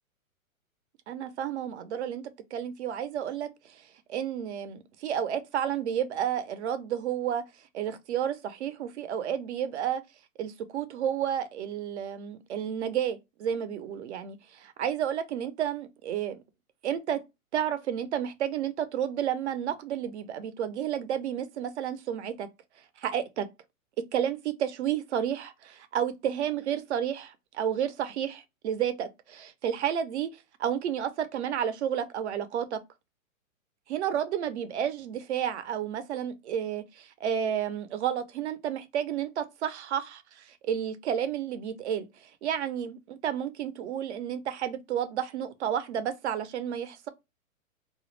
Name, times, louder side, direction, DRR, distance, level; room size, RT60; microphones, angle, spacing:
voice 1, 1.1-3.8 4.1-7.4 7.7-10.0 10.4-16.4 16.8-17.2 17.5-22.5 23.0-23.5 24.1-32.8 33.9-47.1, right 9 dB, 55° right, 0.5 m, -31 dB
2.3 x 2.0 x 3.0 m
hypercardioid pair, 130°, 42 cm